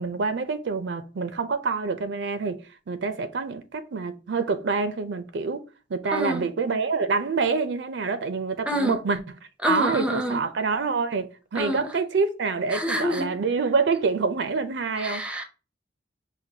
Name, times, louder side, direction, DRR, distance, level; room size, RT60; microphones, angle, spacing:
voice 1, 0.0-5.6 5.9-9.2 9.7-15.3, right 4 dB, 65° right, 0.4 m, -26 dB
voice 2, 6.1-6.4 8.7-9.0 9.6-10.4 11.5-11.8 12.7-13.4 15.0-15.4, equal, 5° right, 0.5 m, -27 dB
5.9 x 2.2 x 2.7 m
head